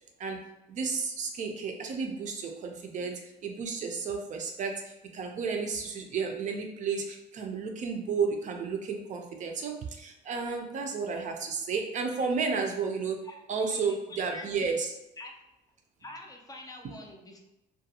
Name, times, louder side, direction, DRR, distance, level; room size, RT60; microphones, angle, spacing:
voice 1, 0.2-15.0, right 5 dB, 45° right, 3 dB, 0.4 m, -32 dB
voice 2, 13.2-14.7 15.2-15.3 16.0-17.4, left 2 dB, 20° left, 2 dB, 0.4 m, -46 dB
2.4 x 2.2 x 2.8 m, 0.92 s
cardioid pair, 110°, 17 cm